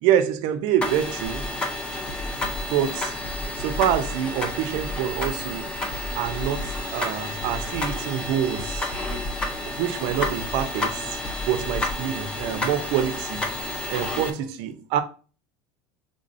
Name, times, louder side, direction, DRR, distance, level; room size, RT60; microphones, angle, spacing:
voice 1, 0.0-1.4 2.7-3.1 3.6-5.8 6.1-8.9 9.6-11.2 11.5-13.4 13.9-15.0, right 10 dB, 50° right, 0.5 m, -26 dB
sound 1, 0.8-14.3, left 2 dB, 10° left, 0.5 m, -31 dB
sound 2, 1.2-11.9, left 1 dB, 50° left, 0.8 m, -36 dB
5.4 x 3.6 x 2.5 m
cardioid pair, 175°, 10 cm